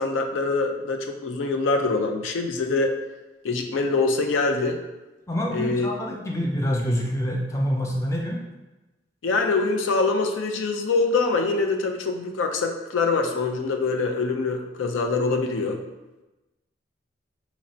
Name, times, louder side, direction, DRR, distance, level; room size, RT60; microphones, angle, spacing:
voice 1, 0.0-2.9 3.4-4.8 5.5-5.9 9.2-15.8, left 3 dB, 90° left, 4 dB, 0.4 m, -24 dB
voice 2, 5.3-8.4, equal, 15° left, -1 dB, 0.4 m, -26 dB
3.0 x 2.5 x 4.2 m, 1.1 s
head